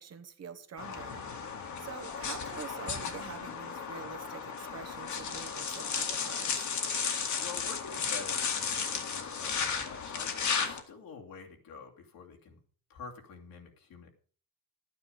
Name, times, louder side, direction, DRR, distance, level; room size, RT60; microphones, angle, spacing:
voice 1, 0.0-6.7, right 6 dB, 45° right, 7 dB, 1.4 m, -46 dB
sound 1, 0.8-10.8, left 6 dB, 55° left, 2.0 m, -34 dB
voice 2, 1.5-1.9 7.4-12.6 12.9-14.1, left 5 dB, 75° left, 1 dB, 2.7 m, -47 dB
12.5 x 9.4 x 5.2 m, 0.42 s
cardioid pair, 135°, 35 cm